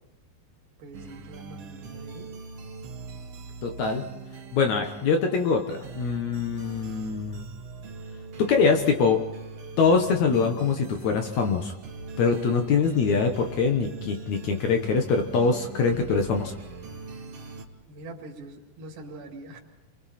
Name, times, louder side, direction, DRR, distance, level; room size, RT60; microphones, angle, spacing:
voice 1, 0.8-2.3 6.5-7.1 17.9-19.6, right 2 dB, 70° right, -1 dB, 3.9 m, -44 dB
sound 1, 0.9-17.7, right 4 dB, 50° right, 2.1 m, -42 dB
voice 2, 3.6-4.1 4.5-7.4 8.4-9.2 9.8-11.8 12.2-16.5, left 5 dB, 65° left, 4 dB, 2.1 m, -23 dB
30.0 x 23.0 x 4.3 m, 1.0 s
omnidirectional pair, 4.4 m